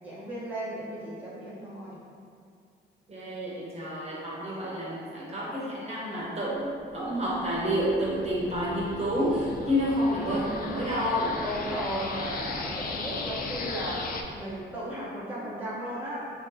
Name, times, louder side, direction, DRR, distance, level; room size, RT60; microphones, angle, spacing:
voice 1, 0.0-2.0 4.4-5.0 11.4-14.0 14.3-16.3, equal, 10° right, -9 dB, 0.8 m, -35 dB
voice 2, 3.1-11.4, equal, 30° right, -6 dB, 1.0 m, -29 dB
sound 1, 6.9-14.2, left 3 dB, 45° left, 0.4 m, -37 dB
3.1 x 2.7 x 3.8 m, 2.3 s
cardioid pair, 90°, 20 cm